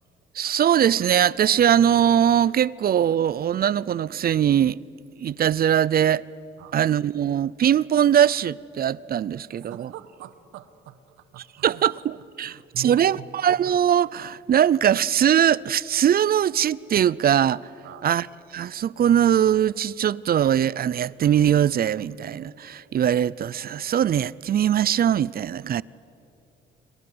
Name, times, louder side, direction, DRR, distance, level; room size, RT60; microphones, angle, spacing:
voice 1, 0.3-4.8 5.2-6.2 6.7-9.9 11.6-17.6 18.0-18.3 18.5-25.8, right 9 dB, 50° right, 0.5 m, -21 dB
voice 2, 9.5-11.9 12.4-13.3 17.8-18.1, right 11 dB, 90° right, 1.4 m, -43 dB
28.0 x 24.5 x 7.9 m
cardioid pair, 90°, 20 cm